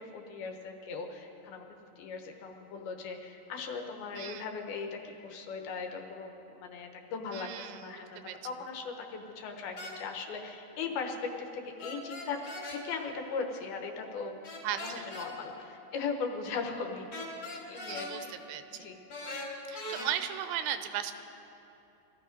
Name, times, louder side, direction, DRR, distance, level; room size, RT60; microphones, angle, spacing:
voice 1, 0.0-12.4 12.7-18.3 18.7-19.0, left 5 dB, 75° left, 4 dB, 2.8 m, -39 dB
voice 2, 4.1-4.5 7.3-8.4 14.6-15.0 17.9-18.9 19.7-21.1, right 10 dB, 85° right, 9 dB, 2.8 m, -37 dB
sound 1, 9.8-10.0 11.8-12.8 14.4-15.3 17.1-18.1 19.1-20.1, left 1 dB, 40° left, 2.7 m, -40 dB
20.0 x 13.5 x 5.2 m, 2.9 s
omnidirectional pair, 4.7 m